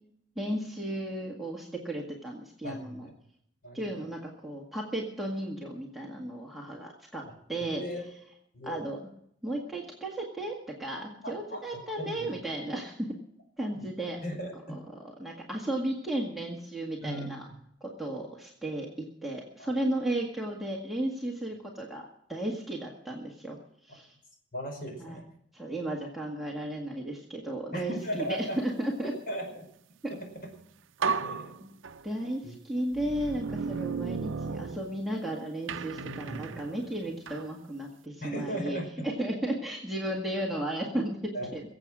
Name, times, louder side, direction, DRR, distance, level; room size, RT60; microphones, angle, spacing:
voice 1, 0.4-3.1 3.7-7.2 7.5-7.8 8.6-9.0 9.4-13.1 13.6-14.2 14.7-17.4 17.8-23.6 23.8-24.1 25.0-25.2 25.5-29.1 31.0-31.1 31.6-31.7 32.0-38.8 39.0-41.6, right 1 dB, ahead, -3 dB, 1.8 m, -34 dB
voice 2, 2.6-3.1 3.6-3.9 7.3-7.4 7.7-8.0 8.5-8.8 11.5-11.6 12.0-12.3 13.8-13.9 14.2-14.8 17.0-17.3 19.6-19.7 24.5-25.2 27.7-28.6 29.3-29.7 30.1-30.2 31.2-31.5 32.4-32.5 36.0-36.6 38.2-39.1 41.3-41.5, equal, 45° left, 2 dB, 5.0 m, -37 dB
sound 1, 30.4-30.6 31.0-32.3 32.9-35.3 35.7-37.5, right 5 dB, 75° right, 0.5 m, -35 dB
22.5 x 8.1 x 6.2 m, 0.71 s
head